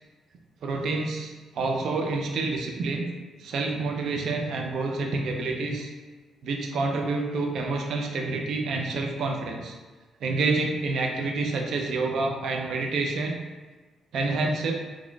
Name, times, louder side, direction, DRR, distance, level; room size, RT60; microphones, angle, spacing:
voice 1, 0.6-3.1 3.4-5.9 6.4-9.7 10.2-13.4 14.1-14.7, right 3 dB, 70° right, 2 dB, 0.5 m, -28 dB
3.9 x 2.9 x 2.3 m, 1.3 s
cardioid pair, 90°, 0 cm